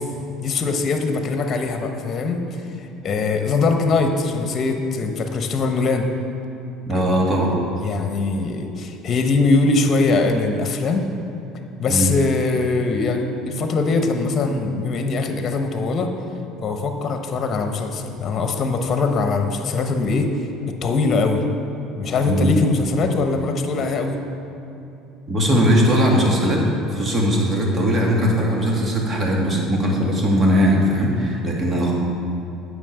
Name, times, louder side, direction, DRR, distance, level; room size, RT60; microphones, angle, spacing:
voice 1, 0.4-2.6 3.0-6.1 6.9-7.2 7.8-11.0 11.8-16.1 16.6-20.3 20.8-21.4 22.0-24.2, left 3 dB, 40° left, 5 dB, 1.1 m, -22 dB
voice 2, 6.9-7.5 11.9-12.2 22.2-22.5 25.3-26.6 26.9-31.9, equal, 35° right, -2 dB, 2.5 m, -19 dB
9.0 x 6.5 x 6.7 m, 2.8 s
hypercardioid pair, 75°, 0 cm